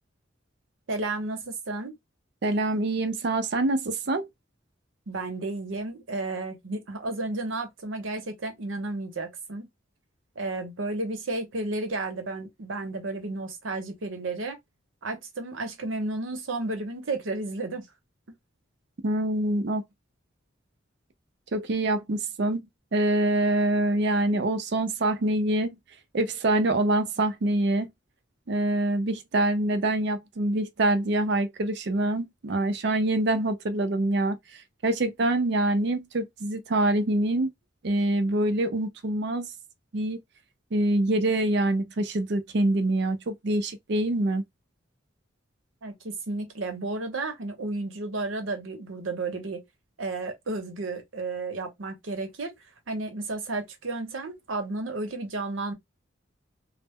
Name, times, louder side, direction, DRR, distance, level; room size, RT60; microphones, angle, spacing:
voice 1, 0.9-1.9 5.1-9.7 10.4-14.6 15.0-17.9 45.8-49.6 50.0-52.5 52.9-55.7, right 2 dB, 85° right, 0.8 m, -32 dB
voice 2, 2.4-4.3 19.0-19.8 21.5-22.6 22.9-25.8 26.1-27.9 28.5-34.4 34.8-37.5 37.8-39.5 39.9-40.2 40.7-44.4, right 1 dB, 60° right, 0.5 m, -25 dB
2.0 x 2.0 x 3.5 m
head